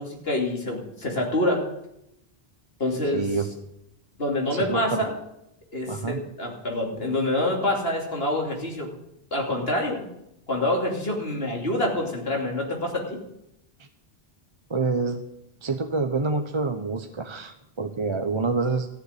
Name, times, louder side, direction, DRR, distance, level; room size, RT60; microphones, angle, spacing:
voice 1, 0.0-1.6 2.8-3.2 4.2-5.1 5.7-8.9 9.3-10.1 10.5-13.2, left 1 dB, 75° left, 0 dB, 3.1 m, -26 dB
voice 2, 3.1-3.5 4.5-5.0 5.9-6.2 14.7-15.2 15.6-18.9, right 3 dB, 30° right, 6 dB, 0.8 m, -27 dB
14.5 x 6.9 x 9.7 m, 0.83 s
omnidirectional pair, 1.0 m